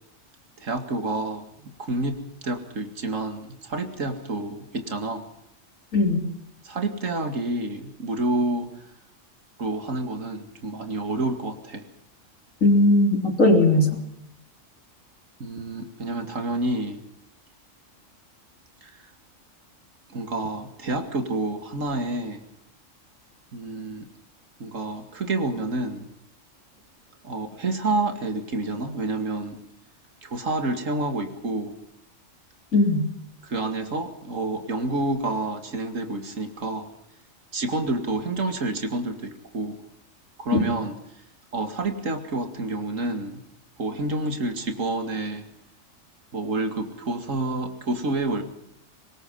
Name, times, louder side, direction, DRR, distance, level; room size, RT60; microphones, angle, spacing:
voice 1, 0.6-5.3 6.6-8.7 9.6-11.9 15.4-17.0 18.8-18.9 20.1-22.4 23.5-24.1 24.6-26.1 27.2-29.6 30.2-31.8 33.4-36.9 37.5-39.8 40.4-41.0 41.5-43.4 43.8-45.5 46.3-48.4, right 2 dB, 80° right, 8 dB, 2.6 m, -29 dB
voice 2, 5.9-6.2 12.6-14.0 32.7-33.1 40.6-40.7, left 2 dB, 90° left, 4 dB, 4.0 m, -18 dB
24.0 x 20.5 x 5.6 m, 0.74 s
omnidirectional pair, 1.3 m